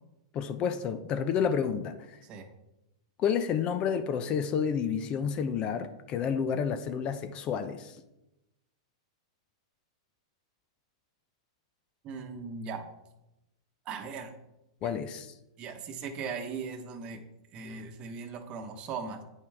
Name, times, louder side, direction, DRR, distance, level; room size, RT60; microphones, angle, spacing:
voice 1, 0.3-2.1 3.2-7.9 14.8-15.3, left 7 dB, 35° left, 10 dB, 0.6 m, -30 dB
voice 2, 12.0-12.8 13.9-14.3 14.8-14.9 15.6-17.2 17.5-19.2, right 5 dB, 35° right, 6 dB, 1.0 m, -38 dB
9.1 x 5.4 x 3.5 m, 0.94 s
hypercardioid pair, 120°, 3 cm